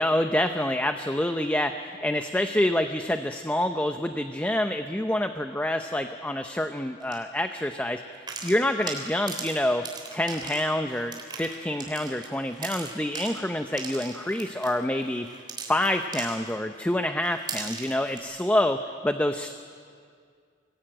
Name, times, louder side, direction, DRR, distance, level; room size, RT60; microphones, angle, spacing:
voice 1, 0.0-9.8 10.1-15.3 15.7-19.5, left 1 dB, 10° left, 7 dB, 0.6 m, -27 dB
sound 1, 7.0-7.2 8.1-16.8 17.2-18.2, right 5 dB, 25° right, 3.5 m, -39 dB
25.5 x 19.0 x 8.9 m, 2.2 s
head